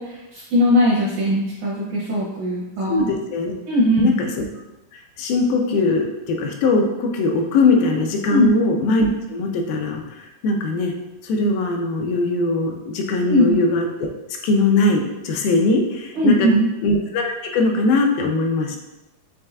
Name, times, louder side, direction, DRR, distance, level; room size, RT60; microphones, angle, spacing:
voice 1, 0.0-3.0 3.7-4.2 8.3-8.5 13.3-13.6 16.1-16.7, left 1 dB, 80° right, -5 dB, 1.7 m, -19 dB
voice 2, 2.9-3.5 4.0-4.3 5.2-10.9 11.2-13.9 14.4-16.5 16.8-18.8, left 2 dB, 85° left, 2 dB, 2.4 m, -20 dB
6.7 x 3.2 x 2.3 m, 0.98 s
omnidirectional pair, 4.2 m